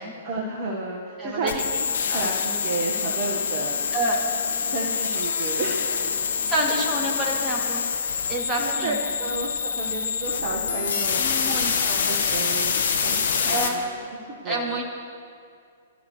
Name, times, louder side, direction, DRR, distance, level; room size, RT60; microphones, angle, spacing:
voice 1, 0.2-1.8 2.1-3.8 4.7-6.2 8.6-11.6 12.0-12.7 13.0-14.0 14.3-14.8, right 3 dB, 40° right, -3 dB, 1.7 m, -31 dB
voice 2, 1.2-1.6 2.1-2.3 3.9-4.2 6.5-7.8 8.3-9.0 11.2-12.1 13.5-13.8 14.4-14.8, right 1 dB, 15° right, -3 dB, 2.9 m, -28 dB
sound 1, 1.5-13.7, left 6 dB, 65° left, 1.5 m, -26 dB
23.0 x 13.0 x 3.3 m, 2.3 s
figure-of-eight pair, 115°, 0 cm